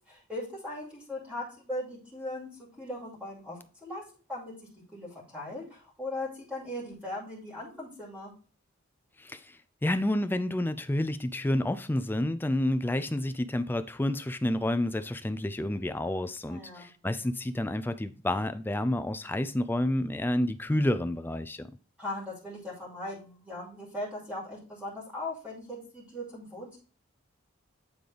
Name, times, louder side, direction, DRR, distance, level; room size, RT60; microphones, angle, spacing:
voice 1, 0.1-2.5 2.8-4.0 4.3-8.3 16.5-16.9 22.0-26.8, left 1 dB, 5° right, 2.3 m, -39 dB
voice 2, 9.2-21.7, left 1 dB, 10° left, 0.3 m, -29 dB
8.6 x 3.9 x 3.3 m
head